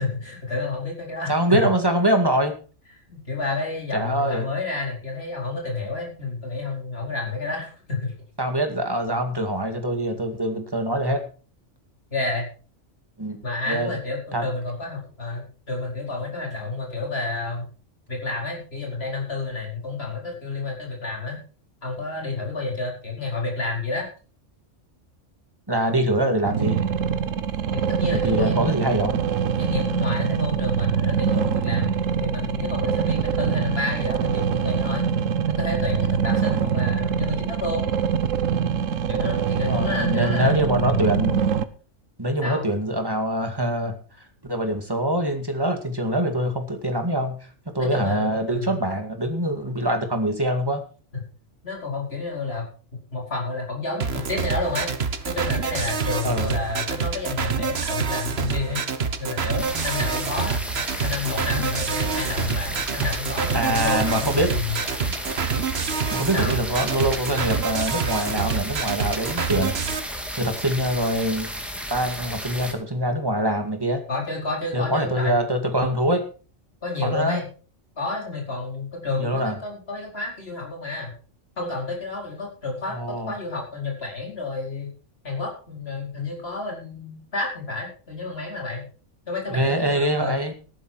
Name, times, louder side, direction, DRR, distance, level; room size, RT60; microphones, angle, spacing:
voice 1, 0.0-1.3 3.1-8.1 12.1-12.5 13.4-17.6 18.1-21.4 21.8-24.1 27.7-28.8 29.6-35.1 35.5-37.8 39.1-40.5 40.8-41.0 42.4-42.7 47.8-48.8 51.1-51.2 51.6-54.9 55.2-58.8 59.2-60.5 61.0-64.8 66.3-66.6 74.1-75.4 76.8-77.4 78.0-81.2 81.6-84.9 85.2-88.8 89.3-90.4, left 3 dB, 50° left, -1 dB, 4.9 m, -30 dB
voice 2, 1.3-2.5 3.9-4.5 8.4-11.2 13.2-14.0 14.3-14.4 25.7-26.8 28.1-29.2 39.7-41.4 42.2-44.0 44.5-47.5 47.7-50.8 56.2-56.5 63.5-64.5 66.1-69.7 70.1-71.5 71.9-74.0 74.7-76.2 77.0-77.4 79.2-79.6 82.9-83.4 89.5-90.5, right 1 dB, 20° right, 5 dB, 2.2 m, -24 dB
sound 1, 26.4-41.6, right 7 dB, 85° right, 1.3 m, -24 dB
sound 2, 54.0-70.0, right 5 dB, 55° right, 1.4 m, -27 dB
sound 3, 59.6-72.7, equal, ahead, 2.4 m, -33 dB
14.0 x 11.5 x 4.6 m, 0.38 s
omnidirectional pair, 1.3 m